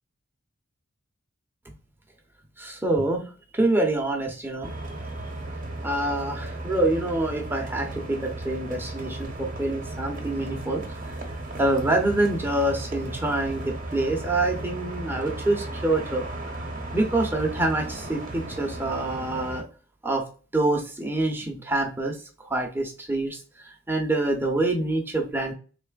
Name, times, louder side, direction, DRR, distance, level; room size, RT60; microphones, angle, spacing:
voice 1, 2.6-3.2 3.5-4.7 5.8-11.2 11.6-16.3 16.9-19.7 20.0-20.3 20.5-25.5, right 2 dB, 10° right, 1 dB, 0.6 m, -26 dB
sound 1, 4.6-19.6, right 2 dB, 40° right, 0.8 m, -35 dB
4.0 x 3.2 x 2.3 m, 0.36 s
head